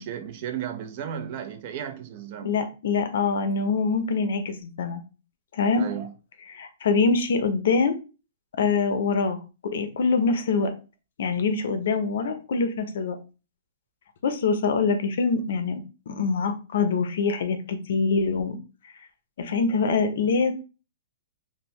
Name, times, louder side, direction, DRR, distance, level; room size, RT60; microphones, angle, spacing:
voice 1, 0.0-2.5 5.7-6.1, right 9 dB, 45° right, 0.4 m, -34 dB
voice 2, 2.4-5.0 5.5-5.9 6.5-8.0 8.6-9.4 9.7-10.7 11.2-13.2 14.2-15.8 16.1-18.6 19.4-20.5, left 4 dB, 70° left, 0.5 m, -24 dB
2.6 x 2.1 x 3.0 m
hypercardioid pair, 140°, 0 cm